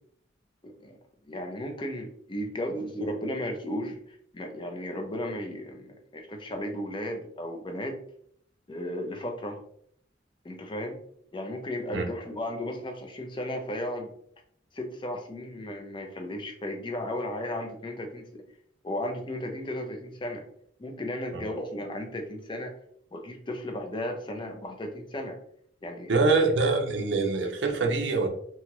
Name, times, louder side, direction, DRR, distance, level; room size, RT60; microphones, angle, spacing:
voice 1, 0.6-1.0 1.2-8.0 8.7-9.6 10.4-11.0 11.3-14.1 14.7-18.4 18.8-20.4 20.8-22.7 23.1-25.4 25.8-26.3, left 1 dB, 25° left, 4 dB, 0.5 m, -35 dB
voice 2, 26.1-28.3, right 3 dB, 65° right, 4 dB, 0.5 m, -24 dB
2.9 x 2.3 x 2.9 m, 0.66 s
head